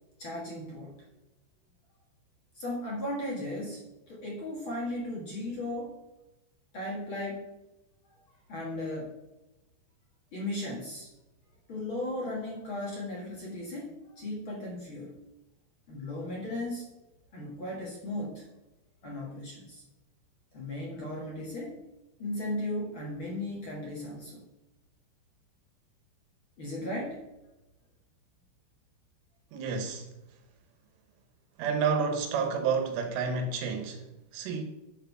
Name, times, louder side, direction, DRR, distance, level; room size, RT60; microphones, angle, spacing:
voice 1, 0.2-0.9 2.5-6.0 6.7-7.5 8.5-9.2 10.3-11.1 11.7-15.1 15.9-16.9 17.3-18.4 19.0-19.8 20.5-21.8 22.2-24.4 26.6-27.2, left 1 dB, 55° left, 1.4 m, -36 dB
voice 2, 29.5-30.1 31.6-34.6, right 5 dB, 75° right, 3.5 m, -30 dB
10.5 x 6.5 x 6.0 m
omnidirectional pair, 5.9 m